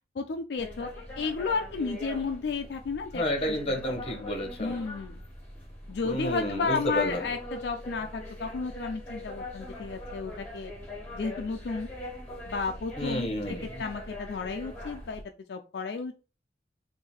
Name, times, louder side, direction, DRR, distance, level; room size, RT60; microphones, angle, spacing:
voice 1, 0.2-0.9 1.2-3.8 4.6-5.2 5.9-10.7 11.1-11.9 12.5-13.3 13.8-15.2 15.5-16.1, left 4 dB, 65° left, 5 dB, 0.4 m, -32 dB
sound 1, 0.6-15.2, left 1 dB, 10° left, 1.7 m, -42 dB
voice 2, 3.1-4.8 6.0-7.2 13.0-13.8, equal, 30° left, 3 dB, 1.1 m, -31 dB
3.7 x 2.6 x 4.2 m, 0.33 s
head